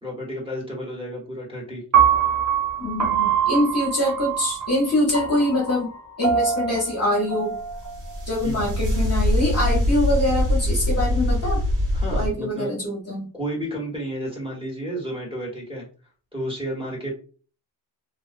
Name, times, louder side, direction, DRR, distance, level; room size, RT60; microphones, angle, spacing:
voice 1, 0.0-1.8 8.4-8.6 11.9-12.7 13.3-15.9 16.3-17.1, equal, 10° right, -4 dB, 0.9 m, -31 dB
Piano, 1.9-8.1, right 8 dB, 35° right, 0.8 m, -24 dB
voice 2, 2.8-5.9 6.2-7.6 8.3-11.6 12.1-13.3, left 1 dB, 30° left, -2 dB, 0.7 m, -24 dB
sound 1, 7.7-12.3, left 1 dB, 85° right, 1.0 m, -23 dB
2.4 x 2.2 x 2.4 m, 0.39 s
wide cardioid pair, 125°, 49 cm